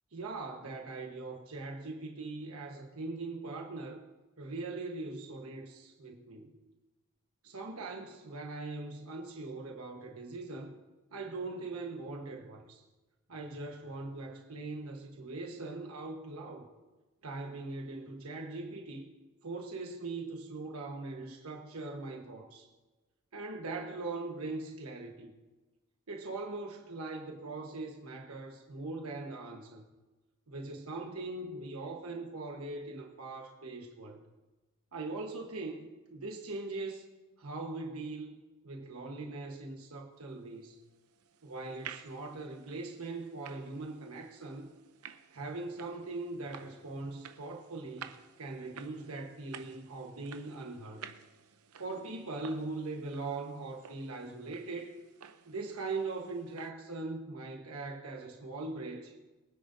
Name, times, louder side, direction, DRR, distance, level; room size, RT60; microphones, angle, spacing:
voice 1, 0.1-4.0 4.4-6.5 7.4-10.8 11.1-12.8 13.3-16.7 17.2-19.1 19.4-22.7 23.3-25.3 26.1-29.8 30.5-34.2 34.9-37.0 37.4-38.4 38.6-40.8 41.4-44.7 45.3-48.1 48.4-51.0 51.8-55.0 55.4-59.2, right 3 dB, 75° right, 1 dB, 1.3 m, -41 dB
sound 1, 40.7-56.7, right 8 dB, 90° right, 0.7 m, -53 dB
22.5 x 9.9 x 2.7 m, 1.2 s
head